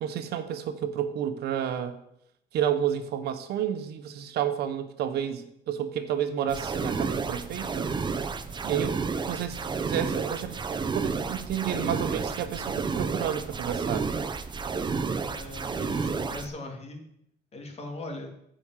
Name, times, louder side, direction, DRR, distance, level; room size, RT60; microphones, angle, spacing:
voice 1, 0.0-2.0 2.5-7.9 8.6-9.0 9.2-10.6 10.9-14.1, right 9 dB, 70° right, 8 dB, 1.1 m, -30 dB
sound 1, 6.5-16.5, right 5 dB, 25° right, 0.7 m, -31 dB
voice 2, 15.3-17.0 17.5-18.3, left 2 dB, 40° left, 3 dB, 2.5 m, -39 dB
9.8 x 5.2 x 7.3 m, 0.77 s
cardioid pair, 110°, 17 cm